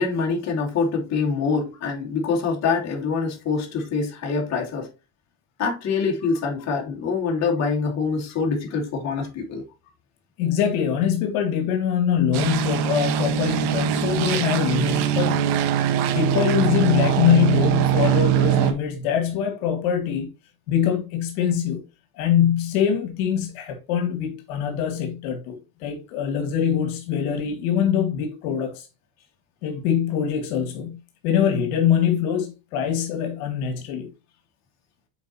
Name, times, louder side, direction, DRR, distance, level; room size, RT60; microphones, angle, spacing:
voice 1, 0.0-4.9 5.6-9.6, left 5 dB, 40° left, 2.6 m, -25 dB
voice 2, 10.4-15.5 16.1-20.3 20.7-21.8 22.2-28.9 29.6-34.1, left 8 dB, 80° left, 1.8 m, -23 dB
sound 1, 12.3-18.7, right 10 dB, 65° right, 1.3 m, -22 dB
7.9 x 4.7 x 2.9 m
supercardioid pair, 125°, 43 cm